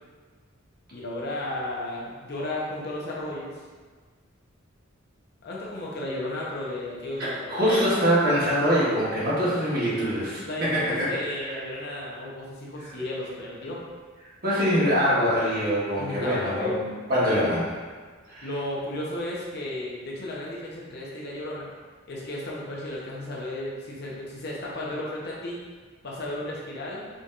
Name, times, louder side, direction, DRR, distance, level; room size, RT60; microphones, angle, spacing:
voice 1, 0.9-3.6 5.4-7.9 10.4-13.8 16.0-16.8 18.4-21.7 22.1-25.6 26.0-27.1, left 1 dB, 55° left, -4 dB, 0.8 m, -34 dB
voice 2, 7.5-11.1 11.4-11.6 14.4-17.7 18.3-18.5, equal, 50° right, -9 dB, 1.4 m, -24 dB
5.0 x 2.8 x 2.4 m, 1.5 s
head